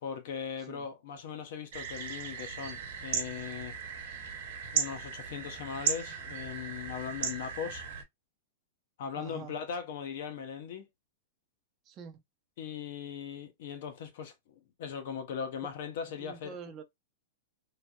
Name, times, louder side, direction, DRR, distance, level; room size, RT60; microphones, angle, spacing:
voice 1, 0.0-3.8 4.7-7.9 9.0-10.9 12.6-14.3 14.8-16.6, left 7 dB, 65° left, 0.7 m, -39 dB
voice 2, 0.6-0.9 9.2-9.6 11.8-12.2 16.2-16.8, right 6 dB, 25° right, 0.6 m, -46 dB
sound 1, 1.7-8.0, right 7 dB, 60° right, 0.9 m, -36 dB
3.1 x 2.5 x 2.2 m
supercardioid pair, 150°, 0 cm